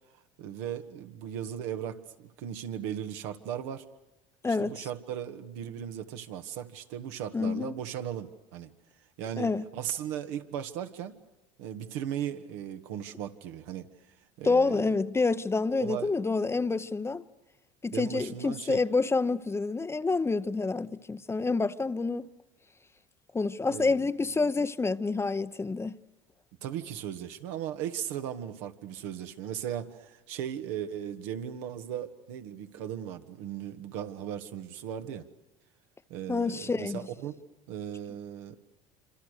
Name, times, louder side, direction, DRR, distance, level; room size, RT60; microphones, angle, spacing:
voice 1, 0.4-3.8 4.5-8.7 9.2-11.1 11.6-13.9 14.4-14.9 15.8-16.1 17.9-18.8 23.7-23.9 26.6-35.2 36.1-37.3 37.7-38.6, right 10 dB, 80° right, 1.7 m, -37 dB
voice 2, 4.4-4.9 7.3-7.7 9.4-9.6 14.4-17.2 17.8-22.3 23.3-26.0 36.3-37.0, left 3 dB, 15° left, 0.8 m, -28 dB
26.5 x 26.5 x 6.6 m
supercardioid pair, 95°, 15 cm